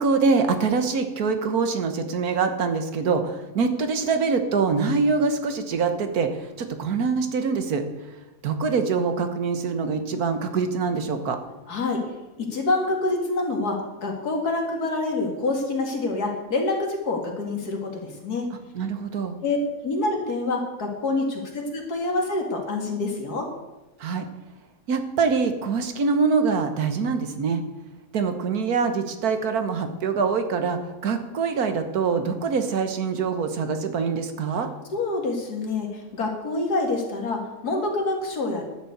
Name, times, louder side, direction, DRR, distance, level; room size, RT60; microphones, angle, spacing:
voice 1, 0.0-6.3 6.6-7.8 8.4-11.4 18.7-19.4 24.0-24.3 24.9-27.6 28.1-34.7, right 5 dB, 75° right, 8 dB, 1.7 m, -24 dB
voice 2, 11.7-12.0 12.4-18.5 19.4-19.6 19.8-23.5 34.9-38.6, left 2 dB, 85° left, 1 dB, 2.7 m, -26 dB
11.5 x 7.1 x 8.0 m, 1.1 s
omnidirectional pair, 1.6 m